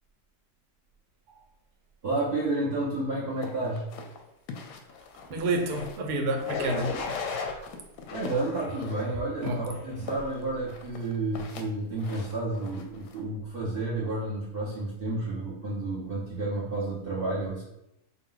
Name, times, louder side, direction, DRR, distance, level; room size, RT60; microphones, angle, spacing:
voice 1, 2.0-3.9 7.4-7.7 8.1-17.6, right 2 dB, 55° right, -6 dB, 0.6 m, -31 dB
sound 1, 3.4-6.1 6.4-7.3 7.6-9.0 9.4-13.2, left 5 dB, 85° left, 1.1 m, -44 dB
voice 2, 5.3-7.0 9.4-9.7 10.0-10.1, right 2 dB, 85° right, 4 dB, 1.2 m, -29 dB
sound 2, 5.6-5.9 6.5-7.5 8.1-9.1 9.7-10.1, left 5 dB, 65° left, 0.8 m, -35 dB
4.6 x 2.1 x 3.7 m, 0.86 s
omnidirectional pair, 1.7 m